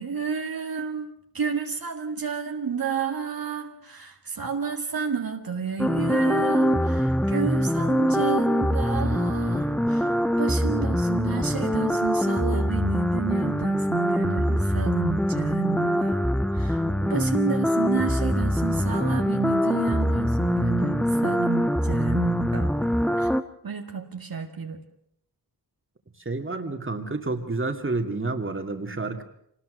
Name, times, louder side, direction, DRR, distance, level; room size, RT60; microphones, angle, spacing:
voice 1, 0.0-16.2 16.5-22.7 23.2-23.3 23.6-24.8, right 6 dB, 65° right, 3 dB, 2.0 m, -31 dB
sound 1, 5.8-23.4, equal, 5° left, 1.0 m, -24 dB
voice 2, 26.2-29.2, right 3 dB, 30° right, 5 dB, 2.5 m, -29 dB
25.0 x 20.0 x 6.6 m, 0.70 s
cardioid pair, 60°, 38 cm